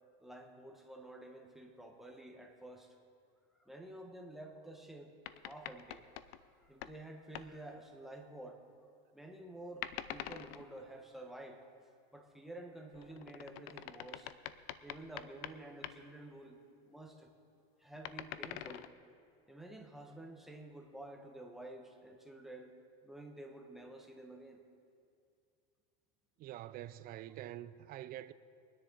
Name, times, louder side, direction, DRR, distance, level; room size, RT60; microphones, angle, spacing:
voice 1, 0.2-3.0 3.6-6.1 6.5-8.6 9.1-11.7 12.1-14.3 14.8-16.6 16.9-17.3 17.8-18.9 19.5-22.7 23.0-24.6, right 1 dB, ahead, 1.2 m, -50 dB
sound 1, 5.2-7.0 7.3-7.5 9.8-10.6 12.9-15.6 15.8-15.9 17.9-18.9, left 13 dB, 70° left, 0.6 m, -45 dB
voice 2, 26.4-28.3, right 13 dB, 30° right, 0.4 m, -46 dB
23.0 x 10.0 x 3.9 m
supercardioid pair, 140°, 30 cm